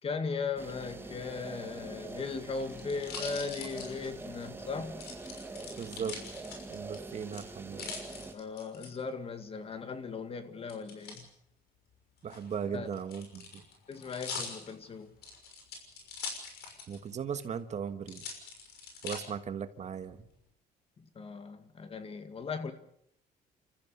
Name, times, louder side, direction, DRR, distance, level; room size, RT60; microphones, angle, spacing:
voice 1, 0.0-5.1 8.3-11.3 12.7-12.9 13.9-15.2 21.0-22.7, left 4 dB, 35° left, 2.1 m, -38 dB
sound 1, 0.6-8.3, right 3 dB, 15° right, 2.0 m, -44 dB
sound 2, 2.1-4.5 5.0-7.0 7.3-8.9 10.7-11.2 12.2-17.1 17.4-17.5 18.1-19.2 19.8-20.3, left 5 dB, 70° left, 6.1 m, -43 dB
voice 2, 5.8-6.2 6.7-7.9 12.2-13.6 16.9-18.2 19.0-20.2, right 7 dB, 45° right, 1.5 m, -37 dB
29.5 x 14.5 x 6.8 m
cardioid pair, 110°, 17 cm